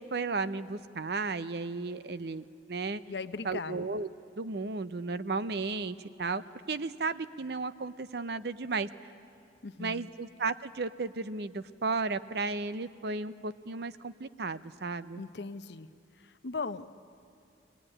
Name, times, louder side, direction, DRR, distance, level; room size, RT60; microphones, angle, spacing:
voice 1, 0.0-3.0 3.4-4.1 4.4-6.4 6.7-8.9 9.8-15.2, right 3 dB, 60° right, 14 dB, 0.6 m, -34 dB
voice 2, 3.1-3.9 9.6-10.0 15.2-15.9 16.2-16.9, left 4 dB, 70° left, 12 dB, 0.7 m, -38 dB
23.0 x 18.0 x 9.9 m, 2.5 s
head